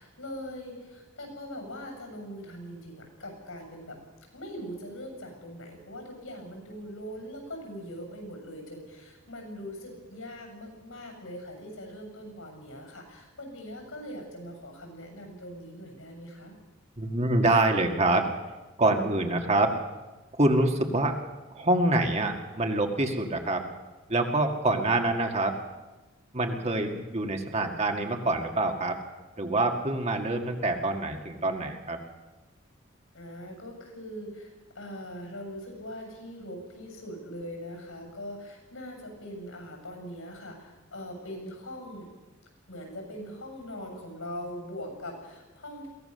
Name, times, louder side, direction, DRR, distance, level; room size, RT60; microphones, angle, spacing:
voice 1, 0.0-4.0 4.3-16.6 33.1-42.1 42.7-45.9, equal, 85° left, 3 dB, 7.3 m, -41 dB
voice 2, 17.0-18.3 18.8-19.7 20.4-21.1 21.5-23.6 24.1-25.6 26.3-29.0 29.4-32.0, right 2 dB, 30° right, 3 dB, 2.0 m, -26 dB
22.5 x 17.0 x 6.8 m, 1.2 s
head